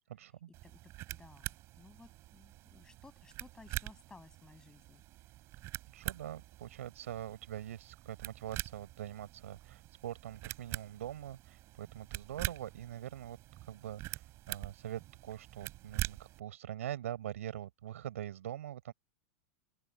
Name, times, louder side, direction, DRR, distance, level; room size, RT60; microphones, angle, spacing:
voice 1, 0.1-0.5 5.9-18.9, right 11 dB, 85° right, 5.1 m, -43 dB
sound 1, 0.5-16.4, right 17 dB, 40° right, 4.8 m, -44 dB
voice 2, 0.6-5.0, left 3 dB, 10° left, 8.0 m, -58 dB
open air
supercardioid pair, 140°, 7 cm